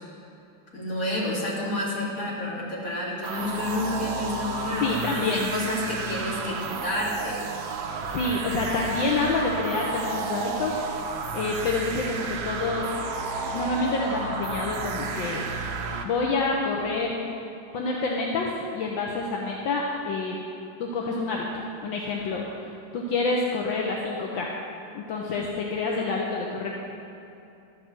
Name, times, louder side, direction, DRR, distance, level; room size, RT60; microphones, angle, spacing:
voice 1, 0.7-7.4, left 1 dB, 45° left, -6 dB, 2.8 m, -30 dB
sound 1, 3.2-16.0, right 4 dB, 85° right, 1.6 m, -32 dB
voice 2, 4.8-5.5 8.0-10.8 11.3-12.9 13.5-15.5 16.0-17.2 17.7-20.4 20.8-22.4 22.9-24.5 24.9-26.7, left 3 dB, 75° left, -1 dB, 1.6 m, -27 dB
12.0 x 5.8 x 7.4 m, 2.7 s
omnidirectional pair, 2.1 m